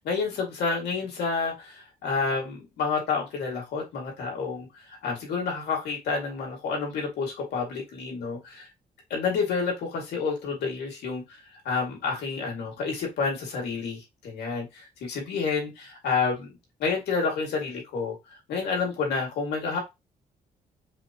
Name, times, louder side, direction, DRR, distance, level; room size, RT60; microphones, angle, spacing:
voice 1, 0.0-8.7 9.1-18.2 18.5-19.8, left 4 dB, 90° left, 2.3 m, -29 dB
5.0 x 3.4 x 2.9 m
cardioid pair, 125°, 17 cm